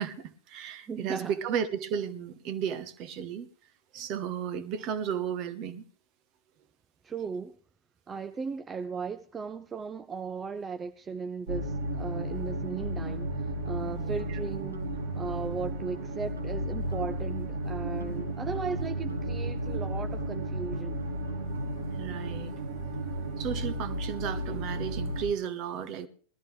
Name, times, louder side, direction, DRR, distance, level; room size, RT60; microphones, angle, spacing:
voice 1, 0.0-3.5 3.9-5.8 13.9-14.4 21.9-22.5 23.4-26.1, right 8 dB, 40° right, 1.2 m, -34 dB
voice 2, 0.9-1.3 7.0-7.6 8.1-21.0, right 5 dB, 20° right, 0.6 m, -37 dB
sound 1, 11.5-25.2, right 1 dB, 60° right, 2.7 m, -33 dB
sound 2, 13.4-14.4 14.7-15.1 15.5-16.1 16.4-16.6 16.9-17.3 17.7-22.1, right 3 dB, 75° right, 1.2 m, -46 dB
19.5 x 13.0 x 3.3 m
figure-of-eight pair, 90°, 0 cm